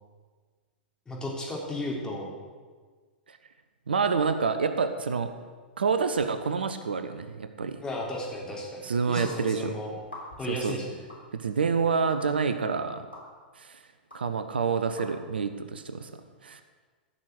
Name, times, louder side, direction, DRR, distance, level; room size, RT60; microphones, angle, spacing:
voice 1, 1.1-2.3 7.8-9.9 10.4-10.9, left 1 dB, 15° left, -3 dB, 3.6 m, -34 dB
voice 2, 3.9-5.3 5.8-7.8 8.8-9.7 10.5-10.8 11.3-13.0 13.6-13.8 14.1-16.1 16.4-16.6, right 5 dB, 75° right, 9 dB, 0.9 m, -28 dB
sound 1, 9.2-9.3 10.0-10.5 11.1-11.2 12.1-12.2 13.1-13.2 14.1-14.2 15.0-15.1, left 1 dB, 90° left, 3.7 m, -43 dB
14.5 x 6.5 x 7.9 m, 1.5 s
figure-of-eight pair, 100°, 5 cm